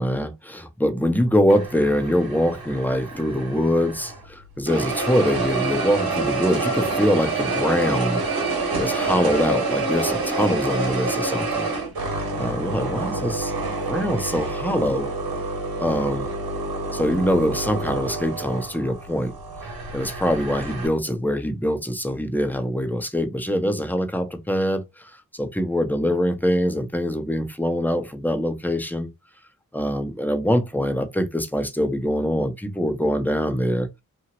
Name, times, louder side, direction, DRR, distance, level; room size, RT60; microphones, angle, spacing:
voice 1, 0.0-8.2 8.8-11.7 12.4-13.5 13.8-15.1 15.8-16.3 16.9-19.3 19.9-29.1 29.7-33.9, equal, 5° left, 0.9 m, -23 dB
sound 1, 1.5-4.3 4.7-20.9, right 3 dB, 75° right, 1.2 m, -27 dB
2.8 x 2.7 x 2.9 m
cardioid pair, 45°, 37 cm